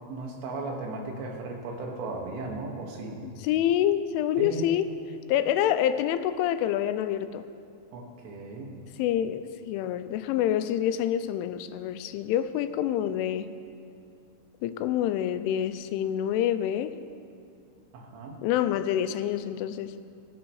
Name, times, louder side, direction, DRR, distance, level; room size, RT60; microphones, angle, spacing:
voice 1, 0.1-3.2 4.4-4.7 7.9-8.7 17.9-18.4, right 3 dB, 90° right, 0 dB, 4.3 m, -36 dB
voice 2, 3.2-4.9 5.3-7.5 9.0-13.5 14.6-16.9 18.4-19.9, left 11 dB, 90° left, 12 dB, 3.1 m, -27 dB
22.0 x 13.5 x 3.2 m, 2.4 s
omnidirectional pair, 5.5 m